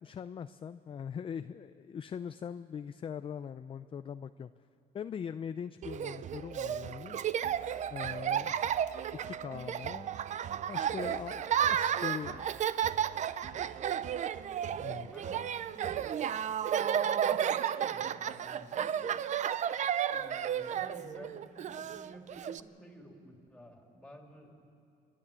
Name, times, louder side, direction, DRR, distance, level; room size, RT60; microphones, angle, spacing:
voice 1, 0.0-4.5 4.9-7.2 7.9-8.6 9.2-10.2 10.7-12.6 14.8-15.1, left 7 dB, 30° left, 11 dB, 0.4 m, -41 dB
Laughter, 5.8-22.6, right 9 dB, 45° right, 0.5 m, -33 dB
voice 2, 14.6-16.1 16.7-18.9 20.1-24.6, equal, 5° left, 1 dB, 3.1 m, -53 dB
29.0 x 10.5 x 8.7 m, 2.7 s
cardioid pair, 110°, 17 cm